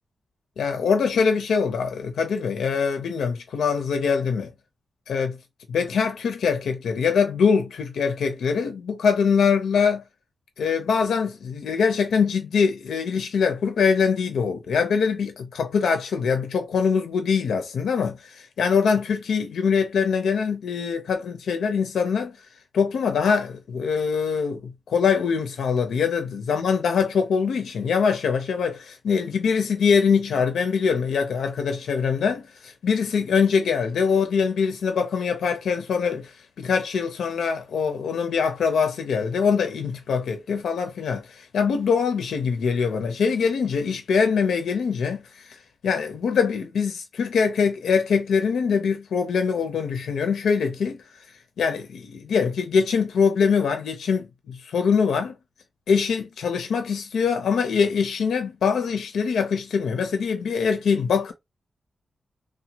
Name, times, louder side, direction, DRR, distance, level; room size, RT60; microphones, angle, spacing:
voice 1, 0.6-4.5 5.1-5.4 5.7-10.0 10.6-22.4 22.7-45.6 45.8-51.0 51.6-55.3 55.9-61.3, left 6 dB, 85° left, 0.4 m, -23 dB
2.9 x 2.0 x 2.8 m
cardioid pair, 60°, 0 cm